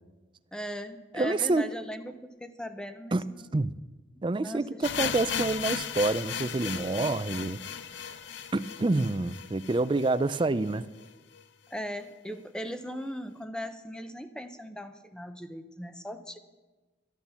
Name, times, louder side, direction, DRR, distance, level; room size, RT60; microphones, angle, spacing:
voice 1, 0.5-3.6 4.4-5.1 11.7-16.4, equal, 5° left, 9 dB, 0.7 m, -39 dB
voice 2, 1.1-1.6 3.1-3.2 3.5-3.7 4.2-7.6 8.5-10.8, right 2 dB, 25° right, 14 dB, 0.4 m, -27 dB
sound 1, 4.8-10.7 11.0-11.1 11.3-11.4 12.0-12.1, left 8 dB, 70° left, 0.6 m, -36 dB
13.0 x 10.5 x 7.1 m, 1.2 s
head